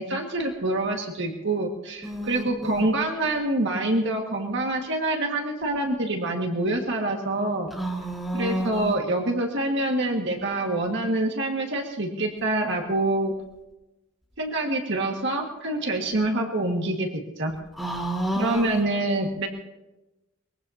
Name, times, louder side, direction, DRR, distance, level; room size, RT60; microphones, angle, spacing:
voice 1, 0.0-7.7 8.3-13.3 14.4-17.5 18.3-19.5, right 2 dB, 60° right, 1 dB, 1.8 m, -26 dB
voice 2, 2.0-2.8 7.7-8.9 17.8-18.7, right 1 dB, ahead, -2 dB, 4.0 m, -30 dB
23.0 x 21.5 x 2.8 m, 1.0 s
head